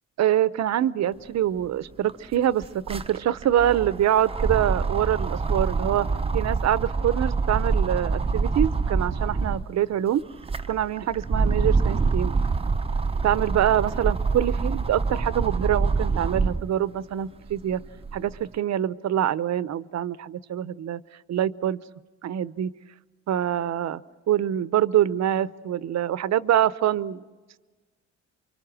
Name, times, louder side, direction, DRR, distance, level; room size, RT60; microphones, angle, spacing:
voice 1, 0.2-6.1 6.3-10.2 10.7-12.3 13.2-17.8 18.1-21.0 21.3-21.8 22.2-22.7 23.3-24.0 24.3-27.2, right 11 dB, 60° right, 16 dB, 0.8 m, -25 dB
sound 1, 1.6-1.7 1.9-9.7 10.2-16.7 17.2-18.4, right 4 dB, 20° right, 0.7 m, -26 dB
28.5 x 24.5 x 6.2 m, 1.3 s
cardioid pair, 90°, 30 cm